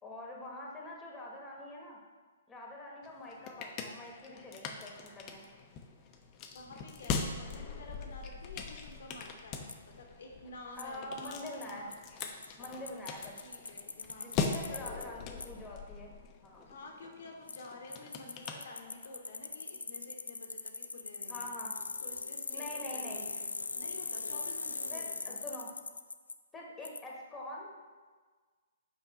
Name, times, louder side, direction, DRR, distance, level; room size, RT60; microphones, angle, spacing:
voice 1, 0.0-2.0 2.5-5.5 10.8-11.9 12.6-13.4 14.2-16.1 16.4-16.6 21.3-21.7 22.5-23.3 24.9-25.7 26.5-27.7, left 1 dB, 10° left, -2 dB, 1.2 m, -45 dB
sound 1, 3.0-19.3, left 5 dB, 30° left, 0.6 m, -41 dB
voice 2, 6.5-11.9 12.2-12.9 13.4-15.0 16.7-21.5 22.0-23.5 23.8-25.4, left 2 dB, 60° left, 2 dB, 0.8 m, -50 dB
Bicycle, 9.7-9.8 10.8-10.9 11.3-11.4 11.6-11.7 11.9-12.0 12.2-15.1 15.4-15.5 17.5-17.6 17.9-26.3 26.9-27.0, left 4 dB, 80° left, 0.3 m, -40 dB
5.4 x 4.6 x 4.1 m, 1.4 s
figure-of-eight pair, 125°, 0 cm